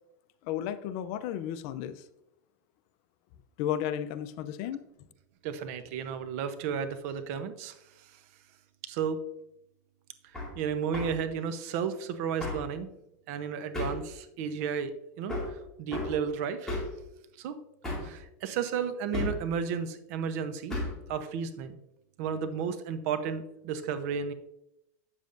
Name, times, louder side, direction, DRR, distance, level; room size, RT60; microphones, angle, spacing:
voice 1, 0.4-2.0 3.6-4.8, left 10 dB, 55° left, 0.5 m, -33 dB
voice 2, 5.4-8.2 8.8-9.2 10.6-12.9 13.3-14.9 15.2-16.8 17.4-17.5 18.0-20.8 21.1-21.8 22.2-24.3, right 7 dB, 60° right, 0.8 m, -33 dB
Hammer, 10.3-10.5 10.9-11.2 12.4-12.7 13.7-14.1 15.3-15.6 15.9-16.2 16.7-17.0 17.8-18.2 19.1-19.5 20.7-21.0, left 2 dB, 5° left, 2.3 m, -33 dB
8.0 x 7.2 x 2.6 m
supercardioid pair, 140°, 9 cm